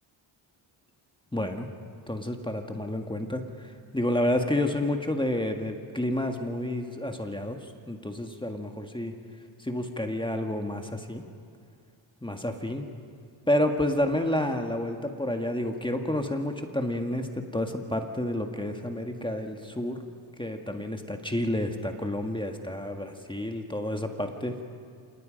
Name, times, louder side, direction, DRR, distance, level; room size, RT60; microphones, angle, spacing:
voice 1, 1.3-1.7 2.1-9.1 9.6-11.2 12.2-12.9 13.5-20.1 20.4-24.6, left 1 dB, 10° left, 4 dB, 1.8 m, -30 dB
27.5 x 19.0 x 5.3 m, 2.3 s
cardioid pair, 75°, 50 cm